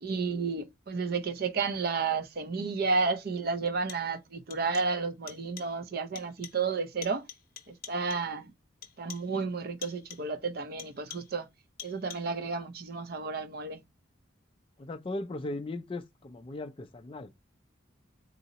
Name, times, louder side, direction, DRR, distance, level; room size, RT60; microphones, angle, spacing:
voice 1, 0.0-7.2 7.7-8.5 9.0-11.5 11.8-13.8, right 4 dB, 45° right, 0.5 m, -32 dB
sound 1, 2.6-2.7 3.7-4.2 4.5-5.0 5.3-5.8 6.2-6.7 7.0-8.4 8.8-9.4 9.8-10.4 10.8-11.4 11.8-12.4, left 9 dB, 45° left, 0.7 m, -48 dB
voice 2, 14.8-17.3, left 2 dB, 25° left, 0.3 m, -38 dB
3.9 x 2.7 x 4.0 m
head